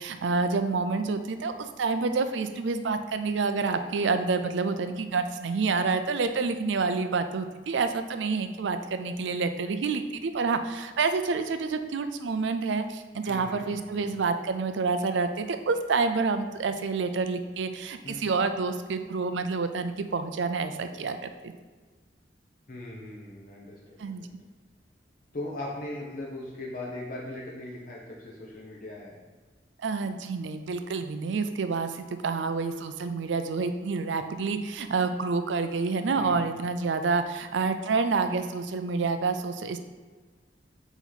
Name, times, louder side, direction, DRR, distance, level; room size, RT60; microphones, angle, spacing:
voice 1, 0.0-21.5 24.0-24.3 29.8-39.8, right 4 dB, 80° right, 9 dB, 0.4 m, -28 dB
voice 2, 13.2-14.1 18.0-18.2 22.7-24.3 25.3-29.2 36.1-36.5, left 1 dB, 50° left, -4 dB, 0.9 m, -39 dB
8.1 x 3.0 x 4.0 m, 1.4 s
head